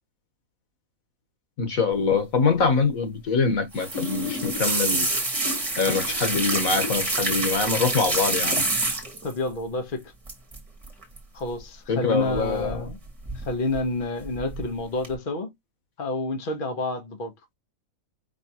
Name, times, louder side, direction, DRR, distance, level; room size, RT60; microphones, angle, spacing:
voice 1, 1.6-5.1 5.8-8.7 11.9-12.9, left 4 dB, 90° left, 1.7 m, -24 dB
sound 1, 3.7-9.3 10.3-10.6 10.8-11.2 12.3-12.9 13.2-13.8 14.3-14.6 15.0-15.1, right 2 dB, 25° right, 1.9 m, -27 dB
voice 2, 9.2-10.1 11.3-13.0 13.3-15.5 16.0-17.3, left 2 dB, 40° left, 1.2 m, -29 dB
5.3 x 3.4 x 2.9 m
omnidirectional pair, 1.4 m